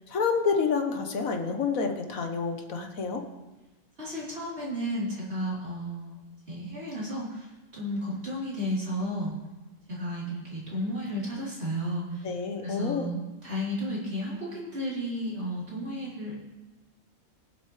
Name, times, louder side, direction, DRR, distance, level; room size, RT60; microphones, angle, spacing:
voice 1, 0.1-3.2 12.2-13.1, left 5 dB, 85° left, 4 dB, 1.7 m, -28 dB
voice 2, 4.0-6.2 6.5-9.3 9.9-12.3 12.6-16.4, equal, 50° right, -7 dB, 4.0 m, -33 dB
22.5 x 7.6 x 3.3 m, 1.1 s
omnidirectional pair, 1.4 m